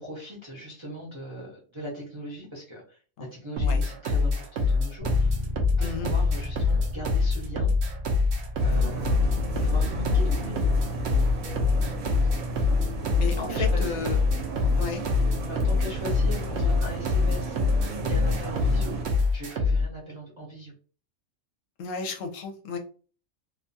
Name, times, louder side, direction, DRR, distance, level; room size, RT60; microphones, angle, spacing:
voice 1, 0.0-3.0 3.3-5.4 5.8-7.7 8.6-9.2 9.6-10.6 10.9-11.0 13.4-14.1 15.4-17.6 18.1-19.0 19.3-20.7, equal, 30° right, -5 dB, 0.6 m, -39 dB
sound 1, 3.6-19.9, left 3 dB, 65° right, 0.8 m, -24 dB
Bass guitar, 5.0-14.8, left 1 dB, 55° left, 0.4 m, -38 dB
voice 2, 5.8-6.1 13.2-14.2 14.8-15.0 21.8-22.8, left 5 dB, 75° left, 5 dB, 0.9 m, -33 dB
sound 2, 8.6-19.0, right 1 dB, 80° right, 1.2 m, -32 dB
2.7 x 2.3 x 2.6 m, 0.40 s
omnidirectional pair, 1.4 m